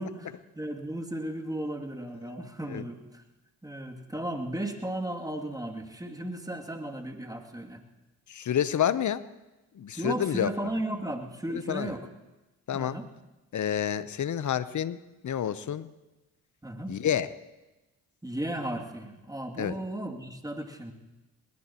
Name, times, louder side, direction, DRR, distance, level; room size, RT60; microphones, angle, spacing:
voice 1, 0.0-3.2 3.6-7.8 10.0-12.1 12.7-13.1 16.6-16.9 18.2-20.9, right 1 dB, 10° right, 1 dB, 2.6 m, -35 dB
voice 2, 8.3-9.2 9.7-10.5 11.5-11.9 12.7-13.0 13.5-15.0 15.2-15.9 16.9-17.3 19.6-19.8, left 9 dB, 50° left, 15 dB, 0.9 m, -28 dB
21.5 x 20.0 x 3.0 m, 1.1 s
hypercardioid pair, 50°, 39 cm